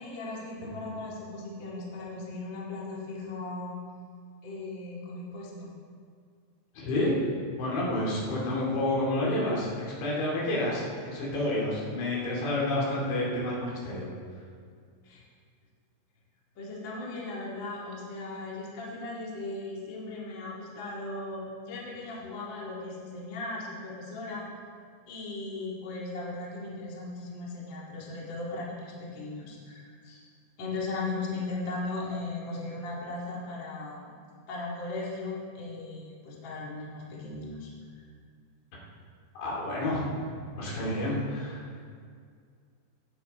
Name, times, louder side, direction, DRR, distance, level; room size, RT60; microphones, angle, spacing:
voice 1, 0.0-3.7 4.4-5.7 15.0-15.2 16.6-24.5 25.1-30.2 30.6-34.1 34.5-37.7 37.9-38.0, left 2 dB, 40° left, -4 dB, 1.9 m, -37 dB
voice 2, 6.8-7.2 7.5-14.1 39.4-40.2 40.5-41.9, left 1 dB, 75° left, -4 dB, 4.9 m, -29 dB
17.0 x 9.0 x 4.2 m, 2.1 s
omnidirectional pair, 5.2 m